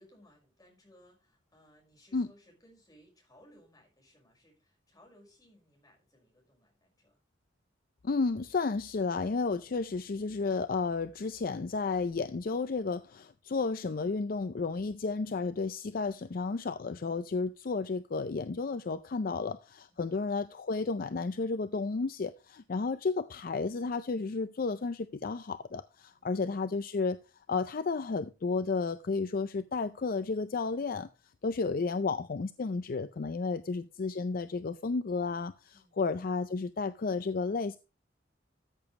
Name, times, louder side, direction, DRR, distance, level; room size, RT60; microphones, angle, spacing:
voice 1, 0.0-7.2 19.9-20.2 26.1-26.4 35.7-36.0, equal, 20° left, 5.5 m, -62 dB
voice 2, 8.0-27.2 27.5-31.1 31.4-37.8, left 4 dB, 50° left, 0.5 m, -32 dB
13.5 x 7.1 x 3.2 m
head